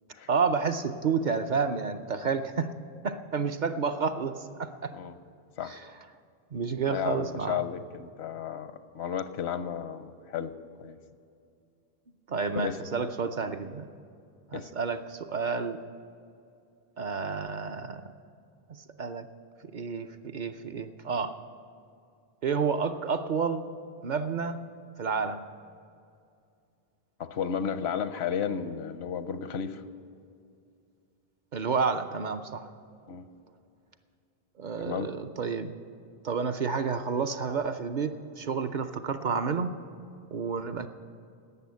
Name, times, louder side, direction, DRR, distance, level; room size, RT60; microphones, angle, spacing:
voice 1, 0.3-2.7 3.0-4.9 5.6-5.9 6.5-7.6 12.3-13.9 14.5-15.8 17.0-18.1 18.7-19.3 19.6-21.4 22.4-23.7 24.0-24.6 25.0-25.4 31.5-32.7 34.6-35.7 36.2-39.7 40.3-40.9, right 5 dB, 55° right, 7 dB, 0.7 m, -30 dB
voice 2, 6.9-11.0 12.5-12.8 14.5-14.7 27.2-29.8 33.1-33.2 34.8-35.1, left 8 dB, 85° left, 12 dB, 1.0 m, -33 dB
12.5 x 8.3 x 9.5 m, 2.4 s
omnidirectional pair, 1.1 m